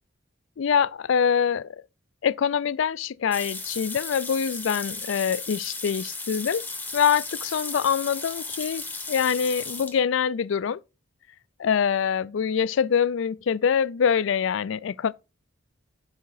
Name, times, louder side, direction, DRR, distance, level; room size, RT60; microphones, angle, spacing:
voice 1, 0.6-1.8 2.2-6.7 6.9-10.8 11.6-15.1, left 7 dB, 65° left, 0.4 m, -24 dB
sound 1, 3.3-10.0, left 3 dB, 10° left, 1.0 m, -35 dB
10.5 x 5.0 x 4.7 m
head